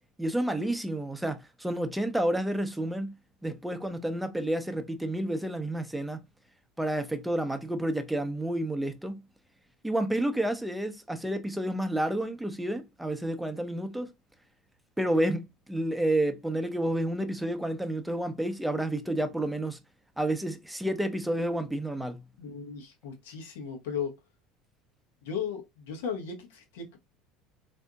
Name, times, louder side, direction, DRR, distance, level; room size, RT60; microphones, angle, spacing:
voice 1, 0.2-3.2 3.4-6.2 6.8-9.2 9.8-14.1 15.0-19.8 20.2-22.2, right 1 dB, 5° right, 0.6 m, -30 dB
voice 2, 22.4-24.1 25.2-27.0, left 7 dB, 75° left, 0.9 m, -36 dB
3.5 x 2.6 x 2.3 m
hypercardioid pair, 70°, 0 cm